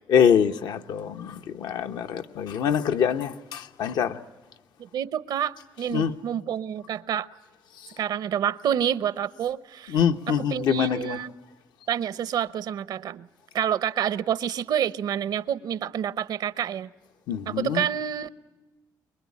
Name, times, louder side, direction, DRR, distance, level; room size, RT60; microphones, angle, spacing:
voice 1, 0.1-4.2 5.9-6.1 9.9-11.2 17.3-17.9, left 8 dB, 80° left, 1.0 m, -24 dB
voice 2, 4.8-7.3 8.0-10.0 10.5-11.3 11.9-13.3 13.5-16.9 17.5-18.3, right 9 dB, 70° right, 0.7 m, -28 dB
24.0 x 22.5 x 8.5 m
cardioid pair, 95°, 7 cm